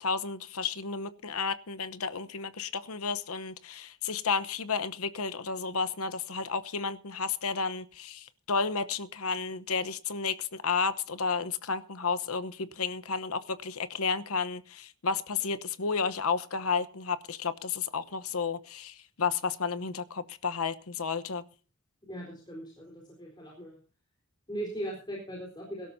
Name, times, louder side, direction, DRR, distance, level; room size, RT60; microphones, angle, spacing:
voice 1, 0.0-21.4, left 5 dB, 80° left, 1.0 m, -32 dB
voice 2, 22.1-23.8 24.5-25.9, right 1 dB, 20° left, 4.2 m, -39 dB
23.0 x 12.5 x 2.7 m
head